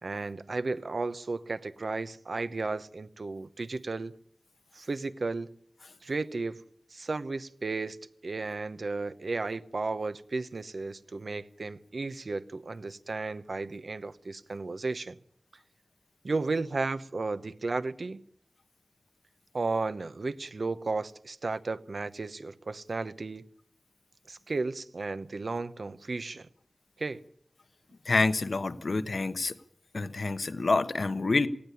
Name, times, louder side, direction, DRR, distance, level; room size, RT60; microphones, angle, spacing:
voice 1, 0.0-4.1 4.7-5.5 6.0-6.6 6.9-8.0 8.2-15.2 16.2-18.2 19.5-23.4 24.3-26.5 27.0-27.2, right 3 dB, 80° right, 0.9 m, -34 dB
voice 2, 28.0-29.6 29.9-31.5, left 3 dB, 80° left, 1.2 m, -27 dB
18.5 x 15.5 x 9.9 m
wide cardioid pair, 55°, 0 cm